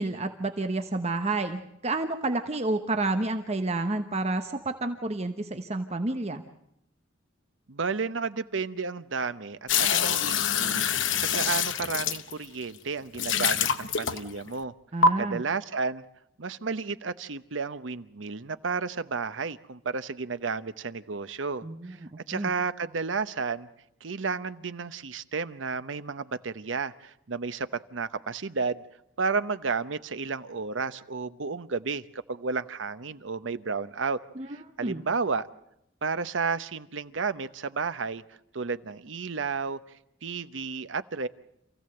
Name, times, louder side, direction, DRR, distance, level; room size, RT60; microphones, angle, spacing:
voice 1, 0.0-6.4 14.9-15.4 21.6-22.5 34.4-34.5 34.8-35.0, right 2 dB, 35° right, 7 dB, 1.0 m, -30 dB
voice 2, 7.7-10.8 11.2-14.7 15.2-16.0 16.4-22.0 22.3-23.7 24.0-28.8 29.2-34.2 34.5-35.5 36.0-38.2 38.5-39.8 40.2-41.3, right 4 dB, 85° right, 13 dB, 0.8 m, -32 dB
sound 1, 9.7-12.6 13.1-14.5 15.0-15.1, left 6 dB, 80° left, 0.9 m, -25 dB
27.0 x 15.5 x 7.8 m, 0.78 s
head